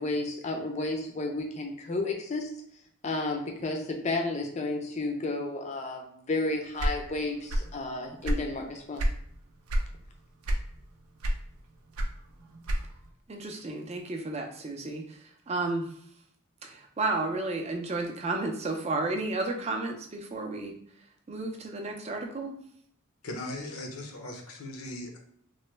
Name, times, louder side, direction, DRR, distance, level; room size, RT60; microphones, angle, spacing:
voice 1, 0.0-2.5 3.0-9.0, left 2 dB, 30° left, 3 dB, 0.4 m, -32 dB
sound 1, 6.8-7.8 8.1-9.2 9.7-10.0 10.4-10.9 11.2-13.1, equal, 90° right, 0.5 m, -28 dB
voice 2, 13.3-15.2 15.5-15.9 16.6-20.7 21.3-22.6, right 2 dB, 30° right, 3 dB, 0.4 m, -32 dB
voice 3, 23.2-25.2, left 1 dB, 80° left, 2 dB, 0.7 m, -38 dB
3.1 x 2.1 x 3.2 m, 0.66 s
head